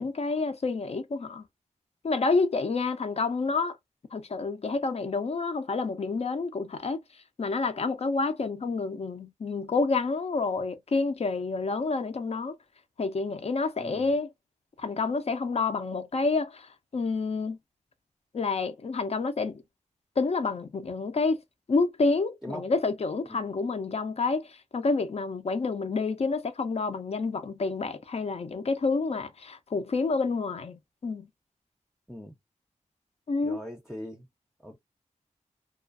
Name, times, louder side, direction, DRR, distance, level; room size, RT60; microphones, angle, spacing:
voice 1, 0.0-1.4 2.0-3.8 4.1-7.0 7.4-12.6 13.0-14.3 14.8-17.6 18.3-19.6 20.2-21.4 21.7-31.3 33.3-33.6, left 3 dB, 55° left, 0.6 m, -28 dB
voice 2, 13.8-14.1 22.4-22.7 23.3-23.5 32.1-32.4 33.4-34.3 34.6-34.8, equal, ahead, 0.6 m, -41 dB
2.4 x 2.4 x 2.4 m
wide cardioid pair, 65°, 13 cm